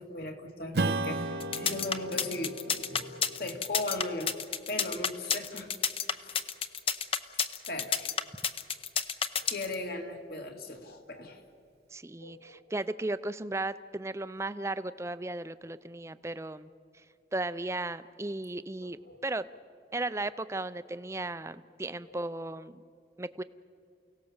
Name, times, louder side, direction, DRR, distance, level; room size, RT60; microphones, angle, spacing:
voice 1, 0.0-4.3 4.7-5.7 6.1-6.4 7.7-8.1 9.3-11.4 12.2-12.6 18.8-19.2 22.1-22.2, left 2 dB, 55° left, 4 dB, 2.1 m, -38 dB
Strum, 0.7-5.7, right 2 dB, 60° right, 0.8 m, -36 dB
sound 1, 1.4-9.7, left 7 dB, 30° left, 0.7 m, -30 dB
voice 2, 11.9-16.7 17.3-19.4 19.9-22.8 23.2-23.4, right 2 dB, 15° right, 13 dB, 0.5 m, -35 dB
29.5 x 17.5 x 7.2 m, 2.4 s
head